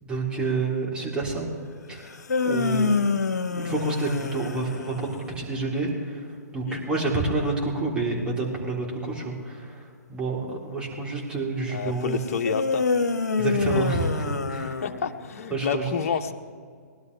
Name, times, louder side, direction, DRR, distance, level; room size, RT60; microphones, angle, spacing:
voice 1, 0.0-1.5 1.9-2.1 2.4-3.0 3.5-6.3 6.5-12.2 13.4-14.7 15.5-15.9, right 3 dB, 10° right, -4 dB, 3.5 m, -29 dB
sound 1, 2.0-5.3 12.4-15.4, left 4 dB, 80° left, 1.2 m, -26 dB
voice 2, 11.7-12.9 14.8-16.3, left 6 dB, 55° left, 8 dB, 1.0 m, -29 dB
21.0 x 12.0 x 3.3 m, 2.1 s
hypercardioid pair, 130°, 9 cm